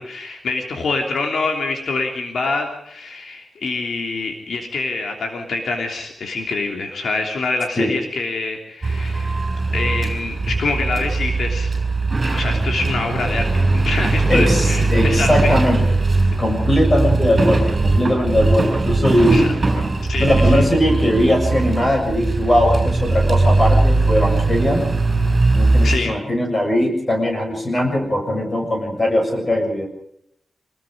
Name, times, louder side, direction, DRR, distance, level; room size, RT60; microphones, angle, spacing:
voice 1, 0.0-9.4 9.7-11.7 12.3-15.6 16.3-16.4 19.3-19.5 20.0-20.6 25.8-26.1, left 3 dB, 65° left, 2 dB, 3.2 m, -25 dB
sound 1, 8.8-26.0, right 3 dB, 30° right, 7.4 m, -19 dB
voice 2, 14.3-15.8 16.4-19.5 20.2-24.9 25.5-29.9, left 1 dB, 25° left, 2 dB, 7.1 m, -19 dB
26.5 x 20.0 x 5.1 m, 0.72 s
wide cardioid pair, 160°, 0 cm